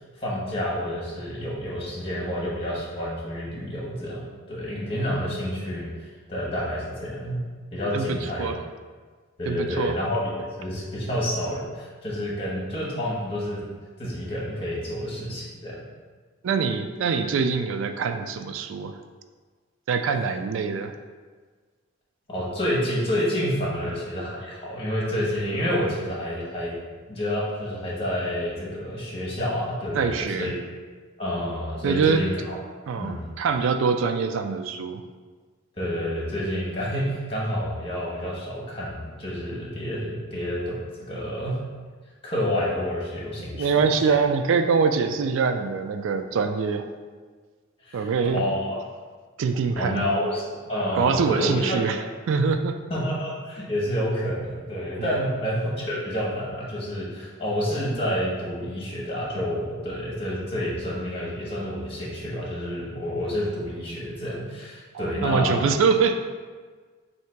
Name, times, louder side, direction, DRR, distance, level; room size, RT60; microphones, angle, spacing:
voice 1, 0.2-5.9 6.3-7.4 7.7-8.5 9.4-10.2 10.6-13.6 14.0-15.7 22.3-26.7 27.1-30.5 31.2-32.6 33.0-33.3 35.8-40.8 41.1-41.5 42.2-44.2 47.8-48.8 49.8-52.0 52.9-65.6, equal, 25° left, -5 dB, 1.1 m, -29 dB
voice 2, 7.9-8.6 9.5-10.0 16.4-18.9 19.9-20.9 29.9-30.5 31.8-32.2 32.9-35.0 43.5-46.9 47.9-48.5 49.4-50.0 50.9-52.0 52.3-52.7 55.0-55.1 64.9-66.3, right 5 dB, 60° right, 8 dB, 0.3 m, -24 dB
3.3 x 2.8 x 4.4 m, 1.5 s
head